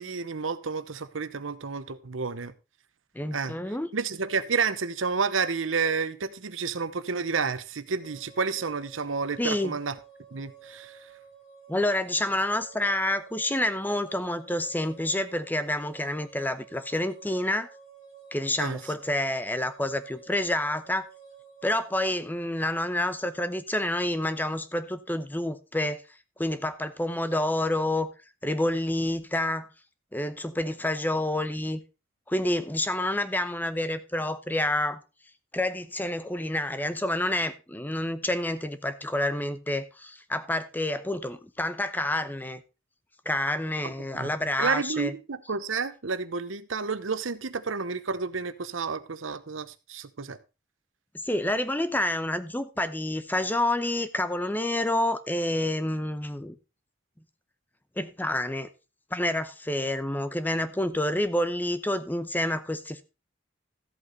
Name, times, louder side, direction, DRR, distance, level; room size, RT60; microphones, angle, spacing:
voice 1, 0.0-2.5 3.3-3.6 3.9-9.9 10.3-11.0 18.6-18.8 43.8-44.3 44.6-50.4, right 5 dB, 90° right, 0.9 m, -30 dB
voice 2, 3.2-3.9 9.4-9.8 11.7-17.7 18.3-21.1 21.6-26.0 26.4-28.1 28.4-29.7 30.1-31.8 32.3-35.0 35.5-42.6 43.3-45.1 51.2-56.6 58.0-58.7 59.1-63.0, left 1 dB, 10° left, 0.7 m, -28 dB
sound 1, 8.0-22.0, right 6 dB, 40° left, 4.3 m, -51 dB
13.5 x 8.2 x 4.0 m
head